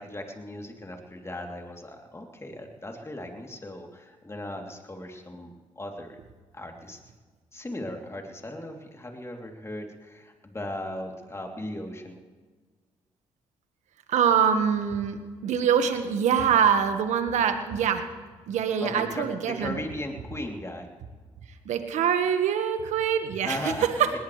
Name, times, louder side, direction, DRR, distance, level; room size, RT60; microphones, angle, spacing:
voice 1, 0.0-6.2 6.5-7.0 7.5-12.2 18.8-20.9 23.4-24.2, left 1 dB, 20° left, 2 dB, 3.3 m, -37 dB
voice 2, 14.1-18.0 18.5-19.7 21.6-23.7, right 7 dB, 75° right, 8 dB, 1.6 m, -24 dB
19.0 x 19.0 x 3.4 m, 1.4 s
supercardioid pair, 55°, 12 cm